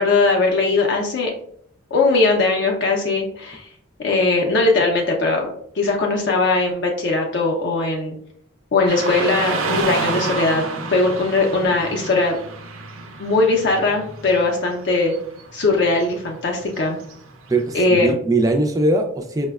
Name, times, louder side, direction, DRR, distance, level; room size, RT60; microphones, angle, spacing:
voice 1, 0.0-1.3 1.9-3.7 4.0-5.5 5.8-8.1 8.7-10.6 10.9-12.4 13.2-15.1 15.5-17.0 17.7-18.2, left 3 dB, 55° left, 0 dB, 0.4 m, -19 dB
Car passing by / Traffic noise roadway noise, 8.9-17.9, right 3 dB, 75° right, 0.5 m, -30 dB
voice 2, 17.5-19.5, right 2 dB, 15° right, 4 dB, 0.3 m, -20 dB
4.8 x 2.1 x 2.3 m, 0.65 s
head